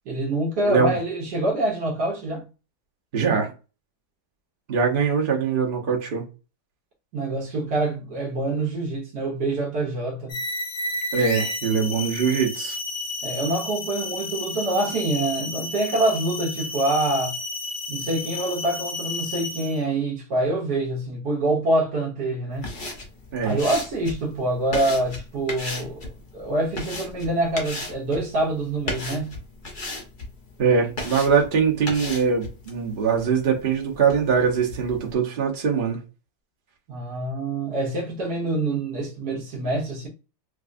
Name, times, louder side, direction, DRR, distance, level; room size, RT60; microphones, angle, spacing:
voice 1, 0.1-2.5 7.1-10.4 13.2-17.3 17.9-22.7 23.4-29.4 36.9-40.1, right 2 dB, 70° right, 1.4 m, -26 dB
voice 2, 3.1-3.5 4.7-6.2 11.1-12.8 23.3-23.6 30.6-36.0, right 6 dB, 40° right, 0.8 m, -22 dB
sound 1, 10.3-19.9, left 2 dB, 75° left, 1.2 m, -32 dB
sound 2, 22.5-35.1, left 2 dB, 40° left, 0.7 m, -37 dB
4.8 x 2.2 x 2.5 m
omnidirectional pair, 1.8 m